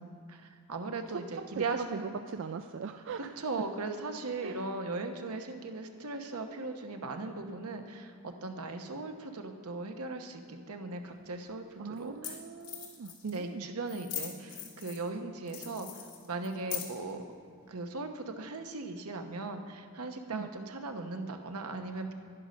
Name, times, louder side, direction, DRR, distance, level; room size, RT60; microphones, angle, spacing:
voice 1, 0.0-2.1 3.2-12.4 13.2-17.2 17.7-22.1, right 3 dB, 80° right, 5 dB, 1.0 m, -38 dB
voice 2, 1.1-3.4 4.4-4.7 11.8-13.7 20.3-20.5, right 6 dB, 60° right, 8 dB, 0.4 m, -40 dB
sound 1, 11.1-11.2 12.0-12.1 12.2-12.3 12.6-13.4 13.9-15.1 15.5-17.1, left 10 dB, 85° left, 2.1 m, -40 dB
11.0 x 11.0 x 5.2 m, 2.4 s
head